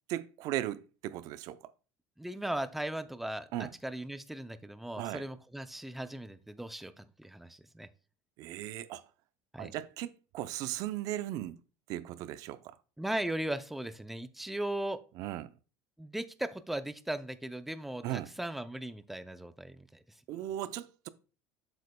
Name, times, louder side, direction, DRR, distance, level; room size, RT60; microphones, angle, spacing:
voice 1, 0.1-1.6 3.5-3.7 5.0-5.2 8.4-9.0 9.6-11.6 11.9-12.6 15.2-15.5 18.0-18.3 20.3-21.1, right 13 dB, 55° right, 0.5 m, -37 dB
voice 2, 2.2-7.9 9.5-9.7 13.0-15.0 16.0-20.2, right 1 dB, 5° right, 0.4 m, -38 dB
7.8 x 7.3 x 2.2 m
cardioid pair, 140°, 7 cm